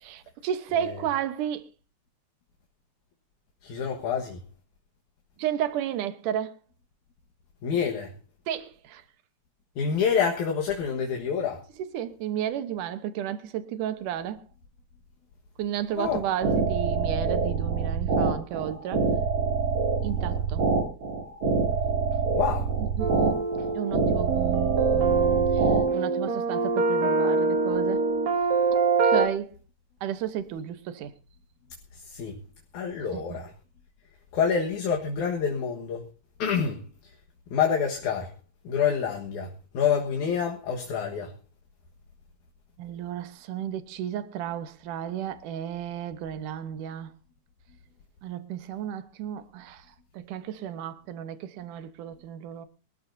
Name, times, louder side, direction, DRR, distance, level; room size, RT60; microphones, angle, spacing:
voice 1, 0.0-1.7 5.4-6.5 8.5-9.0 11.9-14.4 15.6-19.1 20.0-20.7 22.8-23.4 23.7-25.6 25.9-28.0 29.0-29.5 30.0-31.1 33.1-33.4 42.8-47.1 48.2-49.8 50.1-52.7, right 10 dB, 85° right, 2.6 m, -33 dB
voice 2, 3.6-4.4 7.6-8.1 9.8-11.6 16.0-16.2 20.7-20.8 22.3-22.7 32.0-32.4 32.7-33.5 34.3-36.0 36.4-36.9 37.5-38.3 38.6-41.3, left 7 dB, 70° left, 2.9 m, -27 dB
sound 1, 16.0-25.8, right 5 dB, 40° right, 3.1 m, -26 dB
sound 2, 23.0-29.3, right 4 dB, 65° right, 3.4 m, -24 dB
23.0 x 14.0 x 2.7 m
omnidirectional pair, 3.6 m